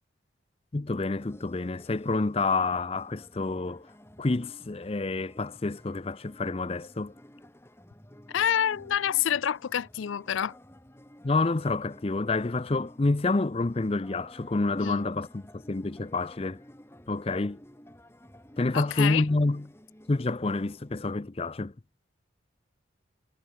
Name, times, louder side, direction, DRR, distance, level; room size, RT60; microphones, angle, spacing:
voice 1, 0.7-3.9 4.2-7.1 11.2-16.6 17.1-17.6 18.6-19.7 20.1-21.7, left 3 dB, 30° left, 0.5 m, -28 dB
sound 1, 1.2-21.1, equal, 15° left, 2.1 m, -53 dB
voice 2, 8.3-10.6 14.8-15.0 18.7-19.2, left 9 dB, 85° left, 0.4 m, -27 dB
head